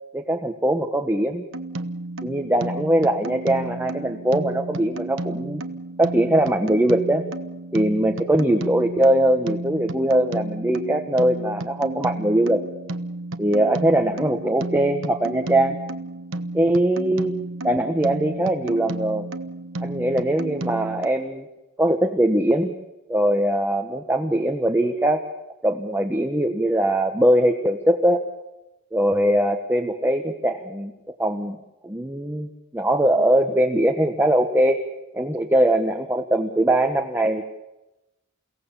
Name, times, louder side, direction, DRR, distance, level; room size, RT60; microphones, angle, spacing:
voice 1, 0.1-1.4 2.2-5.6 6.0-7.2 7.7-12.6 13.4-15.8 16.5-17.4 17.6-19.3 19.8-21.4 21.8-22.7 23.1-25.2 25.6-28.2 28.9-30.9 31.2-31.6 31.8-34.8 35.1-37.4, right 1 dB, 10° right, 3 dB, 1.2 m, -21 dB
sound 1, 1.5-21.1, right 2 dB, 70° right, 1.2 m, -33 dB
29.5 x 17.5 x 7.2 m, 0.98 s
head